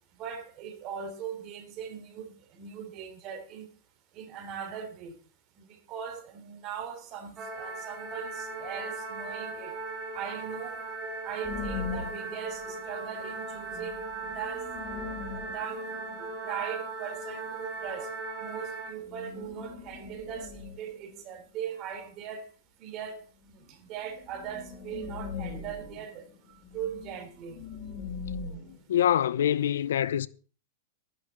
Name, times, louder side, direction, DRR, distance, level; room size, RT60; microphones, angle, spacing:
voice 1, 0.2-3.7 4.1-5.2 5.7-9.8 10.1-10.8 11.2-18.1 18.4-22.5 22.8-27.6, right 8 dB, 40° right, 3.4 m, -40 dB
sound 1, 7.4-18.9, right 3 dB, 20° right, 4.8 m, -38 dB
sound 2, 11.4-13.0 13.3-13.4 13.5-16.7 19.0-21.1 23.6-23.7 24.0-28.8, left 5 dB, 35° left, 3.4 m, -41 dB
voice 2, 28.9-30.3, left 10 dB, 80° left, 0.7 m, -25 dB
12.5 x 11.0 x 4.3 m
hypercardioid pair, 130°, 0 cm